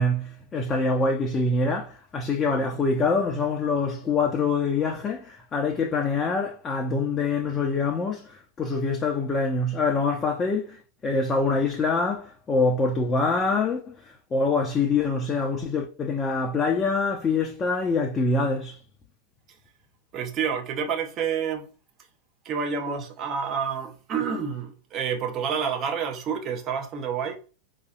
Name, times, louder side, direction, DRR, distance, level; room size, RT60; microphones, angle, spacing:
voice 1, 0.0-18.8, left 3 dB, 20° left, 0.5 m, -25 dB
voice 2, 20.1-21.7 22.4-27.4, right 6 dB, 30° right, 0.7 m, -28 dB
4.8 x 2.6 x 2.3 m
figure-of-eight pair, 90°, 0 cm